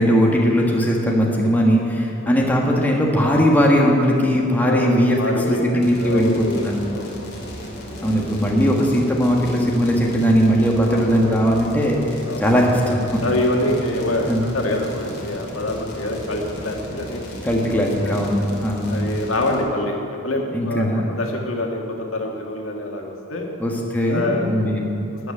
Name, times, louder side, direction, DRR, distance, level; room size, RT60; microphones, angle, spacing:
voice 1, 0.0-5.2 5.5-6.7 8.0-12.0 12.4-13.2 14.3-14.4 17.4-19.0 20.5-21.1 23.6-25.1, equal, 10° left, -2 dB, 1.5 m, -19 dB
voice 2, 4.6-5.6 6.0-7.1 10.9-11.3 12.3-12.4 13.2-17.2 18.0-18.1 18.9-19.9 20.2-21.8 22.1-23.5 24.1-24.5 25.2-25.3, left 1 dB, 90° left, 1 dB, 1.8 m, -25 dB
sound 1, 5.8-19.6, equal, 50° left, 2.8 m, -34 dB
13.0 x 6.3 x 9.7 m, 2.7 s
head